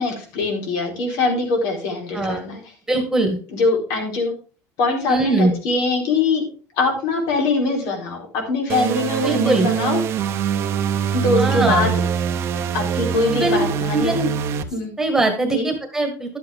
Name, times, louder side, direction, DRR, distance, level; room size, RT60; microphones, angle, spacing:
voice 1, 0.0-2.6 3.5-4.3 4.8-6.5 6.8-10.0 11.1-11.9 12.7-14.1 14.7-14.9 15.5-15.7, left 3 dB, 70° left, 1 dB, 4.4 m, -22 dB
voice 2, 2.9-3.4 5.1-5.5 9.2-9.7 11.4-11.9 13.3-13.7 13.9-14.3 15.0-16.4, right 2 dB, 5° right, 4 dB, 1.7 m, -21 dB
sound 1, 8.7-14.6, right 8 dB, 45° right, 0.9 m, -23 dB
12.0 x 8.0 x 3.6 m, 0.37 s
cardioid pair, 155°, 6 cm